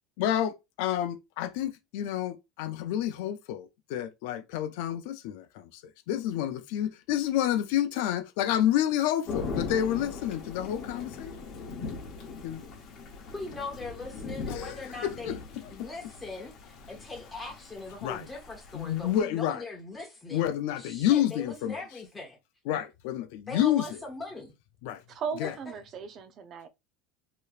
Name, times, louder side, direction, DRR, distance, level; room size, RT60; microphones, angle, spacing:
voice 1, 0.2-5.8 6.1-11.3 12.4-12.6 14.5-15.4 15.8-15.9 18.0-18.3 18.7-19.6 20.3-21.8 22.7-24.0 24.8-25.0 25.4-25.5, left 11 dB, 70° left, 0.4 m, -29 dB
Thunder / Rain, 9.3-19.2, left 4 dB, 40° left, 0.8 m, -40 dB
voice 2, 13.3-15.4 15.7-20.5 20.8-22.4 23.5-24.5 25.4-25.5, left 3 dB, 15° left, 1.0 m, -40 dB
voice 3, 25.1-26.7, right 6 dB, 40° right, 0.5 m, -37 dB
3.1 x 2.9 x 2.4 m
supercardioid pair, 145°, 0 cm